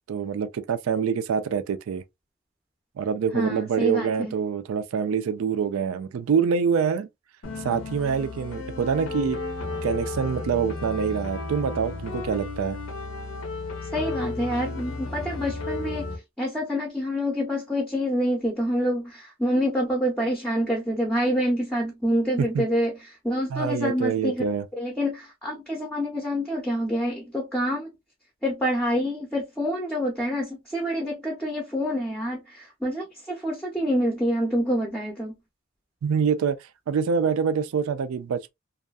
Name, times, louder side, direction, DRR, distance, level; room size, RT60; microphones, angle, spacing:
voice 1, 0.1-2.0 3.0-7.1 7.6-9.4 9.8-12.8 22.4-22.6 23.5-24.6 36.0-36.6 36.9-38.5, right 6 dB, 80° right, 0.3 m, -25 dB
voice 2, 3.3-4.3 13.9-16.1 16.4-23.0 23.2-24.4 24.8-27.9 28.4-35.3, equal, 5° left, 0.5 m, -27 dB
sound 1, 7.4-16.2, left 3 dB, 85° left, 0.7 m, -33 dB
2.6 x 2.3 x 2.2 m
head